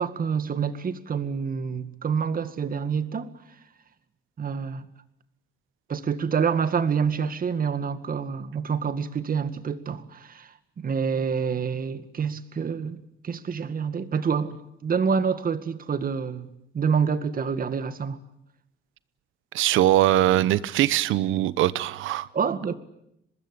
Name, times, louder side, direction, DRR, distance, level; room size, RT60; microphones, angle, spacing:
voice 1, 0.0-3.3 4.4-4.9 5.9-13.0 13.2-18.2 22.3-22.8, right 6 dB, 45° right, 2.0 m, -27 dB
voice 2, 19.5-22.3, right 14 dB, 90° right, 1.0 m, -21 dB
24.5 x 20.5 x 10.0 m
cardioid pair, 90°, 20 cm